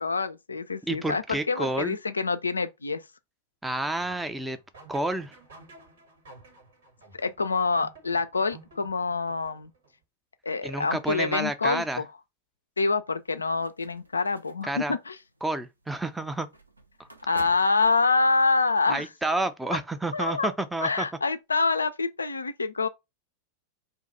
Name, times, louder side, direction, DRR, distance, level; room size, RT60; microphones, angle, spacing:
voice 1, 0.0-3.0 7.1-9.7 10.4-12.1 12.8-15.2 17.3-19.1 19.7-19.8 20.1-20.5 20.8-22.9, left 4 dB, 75° left, 0.3 m, -26 dB
voice 2, 0.9-2.0 3.6-4.6 4.9-5.4 10.6-12.0 14.6-15.0 15.4-16.5 18.9-21.1, right 2 dB, 5° right, 0.4 m, -30 dB
sound 1, 4.0-9.9, right 3 dB, 65° right, 1.2 m, -52 dB
sound 2, 13.1-18.5, right 1 dB, 85° right, 0.5 m, -50 dB
2.6 x 2.3 x 4.0 m
figure-of-eight pair, 90°, 0 cm